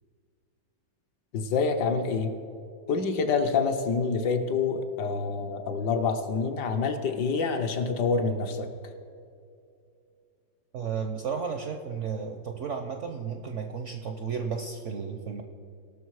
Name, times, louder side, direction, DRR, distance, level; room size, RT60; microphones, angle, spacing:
voice 1, 1.3-2.3 2.9-8.7, left 4 dB, 70° left, 5 dB, 1.3 m, -27 dB
voice 2, 10.7-15.4, right 6 dB, 65° right, 4 dB, 0.7 m, -33 dB
17.5 x 6.3 x 4.7 m, 2.5 s
omnidirectional pair, 2.1 m